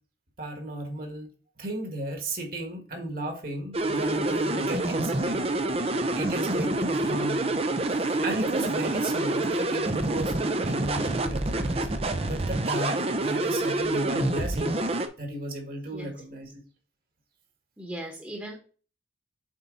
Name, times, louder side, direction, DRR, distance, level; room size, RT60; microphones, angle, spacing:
voice 1, 0.4-1.3 1.6-5.8 6.2-7.6 8.0-16.6, right 1 dB, 45° right, 3 dB, 1.8 m, -35 dB
sound 1, 3.7-15.1, right 2 dB, 30° right, 0.6 m, -27 dB
voice 2, 15.9-16.4 17.8-18.6, right 1 dB, 10° right, -1 dB, 1.2 m, -39 dB
7.3 x 4.1 x 4.0 m, 0.38 s
head